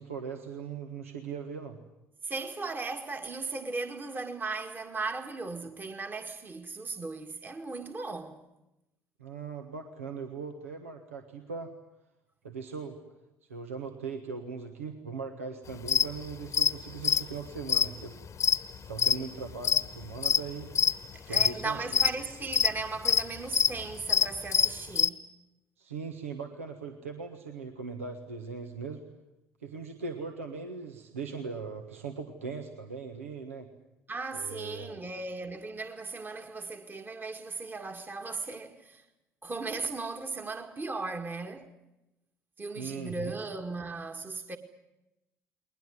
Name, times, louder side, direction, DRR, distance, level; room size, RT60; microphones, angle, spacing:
voice 1, 0.0-1.8 9.2-11.7 12.4-13.0 13.5-18.1 18.9-20.7 21.3-22.0 25.8-29.0 29.6-33.7 34.3-35.0 42.7-43.4, right 5 dB, 85° right, 1.4 m, -39 dB
voice 2, 2.2-8.4 21.1-25.3 34.1-39.1 39.4-41.7 42.6-44.6, right 3 dB, 25° right, 2.0 m, -37 dB
sound 1, 15.9-16.1 16.5-16.7 17.0-19.2 19.5-20.4 20.7-20.9 21.3-22.1 22.5-22.7 23.0-23.7 24.0-25.1, left 8 dB, 45° left, 1.1 m, -24 dB
21.0 x 20.5 x 9.4 m
figure-of-eight pair, 55°, 7 cm